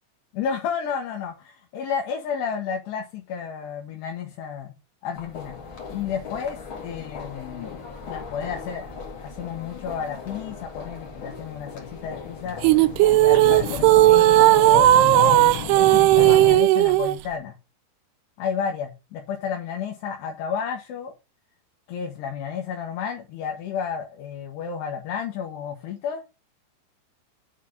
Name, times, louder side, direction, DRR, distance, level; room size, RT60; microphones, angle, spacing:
voice 1, 0.3-4.7 5.0-5.5 5.9-8.9 9.2-12.6 13.1-15.5 15.8-17.5 18.4-21.1 21.9-26.2, left 7 dB, 80° left, 1 dB, 3.1 m, -32 dB
sound 1, 5.1-16.6, left 6 dB, 45° left, 1.7 m, -34 dB
sound 2, 12.6-17.2, right 15 dB, 85° right, 2.5 m, -16 dB
7.1 x 4.1 x 6.3 m, 0.28 s
omnidirectional pair, 5.0 m